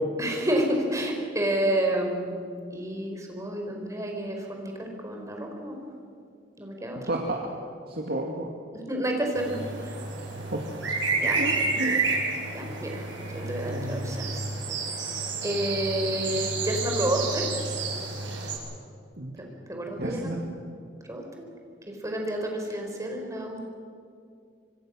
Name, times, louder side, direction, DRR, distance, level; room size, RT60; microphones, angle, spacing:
voice 1, 0.2-2.4 2.7-5.7 6.6-7.1 8.9-9.9 11.1-11.4 12.5-13.0 13.3-14.5 15.4-17.5 19.4-20.3 21.1-21.2 21.9-23.6, right 1 dB, 15° right, 2 dB, 4.4 m, -30 dB
voice 2, 7.9-8.5 10.5-10.6 11.3-12.0 13.7-14.3 19.2-19.3 20.0-20.4, right 1 dB, 60° right, 0 dB, 2.2 m, -31 dB
sound 1, 9.3-18.6, right 3 dB, 75° right, 6.4 m, -30 dB
25.5 x 25.0 x 6.4 m, 2.3 s
head